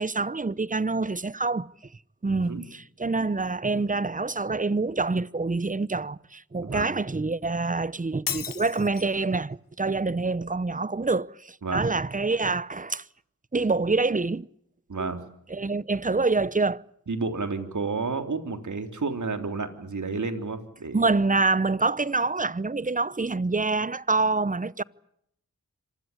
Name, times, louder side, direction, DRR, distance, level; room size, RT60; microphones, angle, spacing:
voice 1, 0.0-1.7 2.2-13.0 13.5-14.5 15.0-15.1 15.5-16.8 20.9-24.8, right 3 dB, 25° right, 0.9 m, -26 dB
voice 2, 2.3-2.6 6.6-6.9 11.6-11.9 14.9-15.2 17.1-21.0, right 4 dB, 60° right, 3.6 m, -31 dB
Shatter, 8.3-9.3, left 7 dB, 70° left, 1.4 m, -34 dB
26.0 x 16.5 x 9.8 m
cardioid pair, 40°, 34 cm